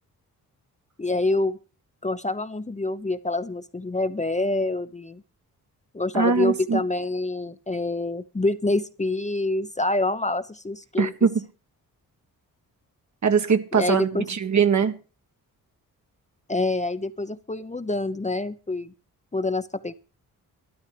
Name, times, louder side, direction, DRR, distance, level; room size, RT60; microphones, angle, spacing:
voice 1, 1.0-1.6 2.0-5.2 5.9-11.1 13.7-14.3 16.5-18.9 19.3-19.9, left 2 dB, 20° left, 0.9 m, -26 dB
voice 2, 6.1-6.8 11.0-11.3 13.2-14.9, right 6 dB, 50° right, 1.6 m, -21 dB
13.0 x 12.0 x 5.1 m
cardioid pair, 65°, 36 cm